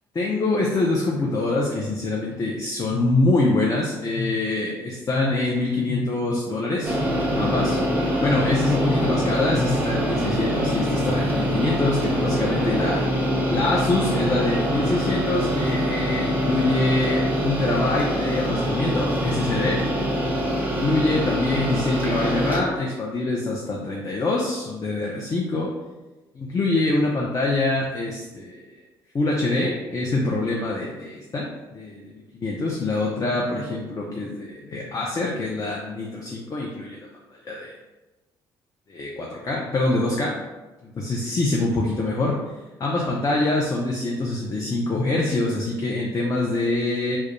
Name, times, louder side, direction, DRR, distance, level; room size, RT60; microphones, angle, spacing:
voice 1, 0.1-7.0 7.4-7.8 8.2-13.0 13.5-19.8 20.7-25.7 26.3-28.8 29.1-37.1 37.4-37.7 38.9-40.3 40.8-42.4 42.8-47.2, left 2 dB, 30° left, -2 dB, 0.4 m, -25 dB
sound 1, 6.8-22.6, equal, 15° right, 0.8 m, -24 dB
2.2 x 2.1 x 2.9 m, 1.1 s
hypercardioid pair, 50°, 12 cm